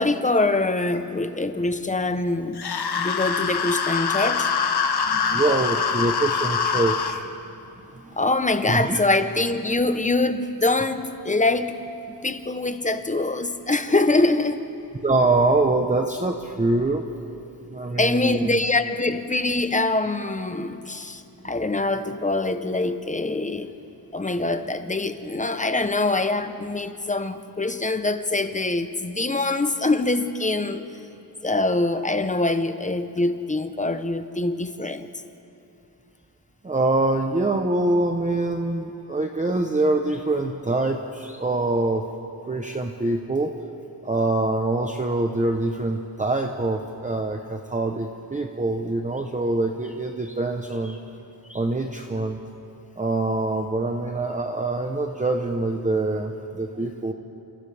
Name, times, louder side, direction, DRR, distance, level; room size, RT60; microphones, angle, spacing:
voice 1, 0.0-2.7 3.0-4.5 8.2-11.8 12.2-14.7 18.0-23.7 24.1-30.8 31.4-35.1, left 2 dB, 15° left, 9 dB, 0.7 m, -24 dB
sound 1, 2.6-7.2, left 6 dB, 60° left, 1.1 m, -24 dB
voice 2, 5.0-7.3 7.8-8.2 8.7-9.0 15.0-17.1 17.7-18.6 36.6-42.1 42.5-43.5 44.0-51.0 51.4-52.4 53.0-57.1, right 2 dB, 15° right, 3 dB, 0.8 m, -24 dB
29.5 x 28.5 x 3.4 m, 2.7 s
wide cardioid pair, 175°, 44 cm